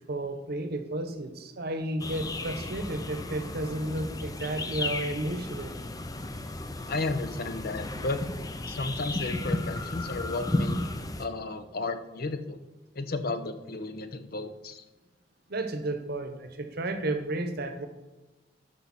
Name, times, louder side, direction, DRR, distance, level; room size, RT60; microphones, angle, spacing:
voice 1, 0.1-5.7 15.5-17.9, right 1 dB, 60° right, 8 dB, 1.0 m, -32 dB
sound 1, 2.0-11.3, left 2 dB, 20° left, 0.5 m, -34 dB
voice 2, 6.9-8.2 8.7-10.8 11.2-12.6 12.9-14.8, left 3 dB, 55° left, 10 dB, 0.8 m, -33 dB
12.5 x 5.4 x 4.2 m, 1.1 s
head